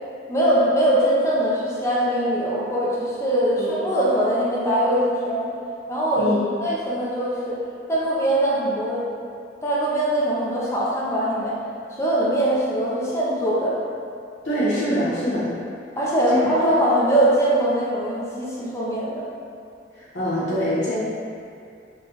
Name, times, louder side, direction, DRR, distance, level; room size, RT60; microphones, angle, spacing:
voice 1, 0.3-5.5 5.9-7.6 7.9-9.0 9.6-11.5 12.0-13.8 16.0-19.2, right 1 dB, 15° left, -7 dB, 0.5 m, -22 dB
voice 2, 14.4-15.5 16.3-16.4 19.9-21.0, equal, 85° left, -10 dB, 1.2 m, -24 dB
3.5 x 2.3 x 2.8 m, 2.4 s
head